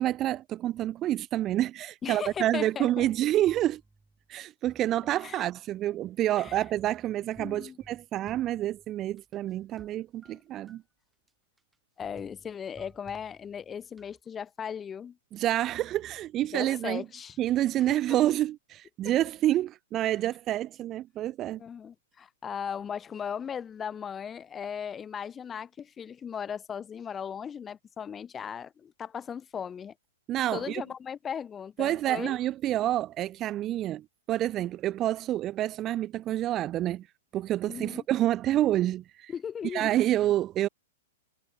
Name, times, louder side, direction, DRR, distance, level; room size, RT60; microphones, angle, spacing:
voice 1, 0.0-3.8 4.3-10.8 15.3-17.0 17.4-21.6 30.3-30.8 31.8-37.1 37.3-39.3 39.7-40.7, right 13 dB, 25° right, 0.3 m, -28 dB
voice 2, 2.0-3.1 5.2-5.5 6.4-6.6 7.4-7.8 10.3-10.4 12.0-15.2 16.5-17.4 17.8-18.2 21.6-29.9 30.5-32.4 37.7-38.0 39.3-39.9, left 7 dB, 15° left, 0.8 m, -37 dB
sound 1, 2.3-4.3 4.7-9.9 10.2-10.8 11.3-11.4 11.6-11.7 12.0-14.2, right 3 dB, 5° right, 5.2 m, -56 dB
hypercardioid pair, 140°, 0 cm